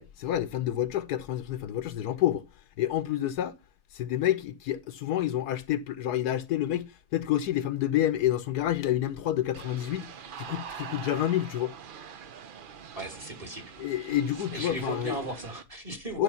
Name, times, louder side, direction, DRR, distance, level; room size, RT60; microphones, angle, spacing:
voice 1, 0.0-2.4 2.8-3.6 3.9-10.1 10.4-11.7 13.8-15.2 16.1-16.2, left 12 dB, 75° left, 1.2 m, -28 dB
sound 1, 9.5-15.6, right 7 dB, 75° right, 0.4 m, -44 dB
voice 2, 12.9-13.7 14.5-16.2, right 1 dB, 20° right, 1.6 m, -36 dB
11.5 x 5.0 x 5.5 m
omnidirectional pair, 1.8 m